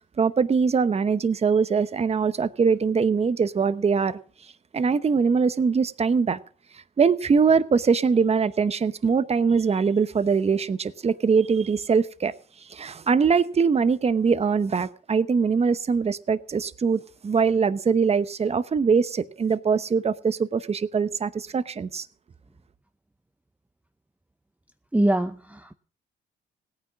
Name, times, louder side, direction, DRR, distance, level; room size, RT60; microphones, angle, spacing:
voice 1, 0.2-4.2 4.7-6.4 7.0-12.3 12.7-22.1, right 5 dB, 30° right, 0.9 m, -22 dB
voice 2, 24.9-25.7, right 1 dB, 5° right, 0.7 m, -23 dB
17.5 x 9.5 x 6.2 m
cardioid pair, 90°, 20 cm